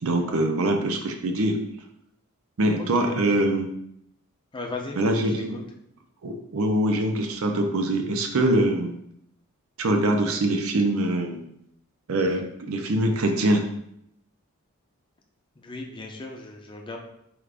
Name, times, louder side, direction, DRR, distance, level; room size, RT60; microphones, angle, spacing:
voice 1, 0.0-1.6 2.6-3.7 5.0-5.6 6.2-8.9 9.8-11.4 12.1-13.7, right 1 dB, 75° right, 4 dB, 0.6 m, -23 dB
voice 2, 2.8-3.5 4.5-5.2 5.5-5.6 15.6-17.0, left 3 dB, 20° left, 1 dB, 0.5 m, -37 dB
4.7 x 2.4 x 3.4 m, 0.75 s
head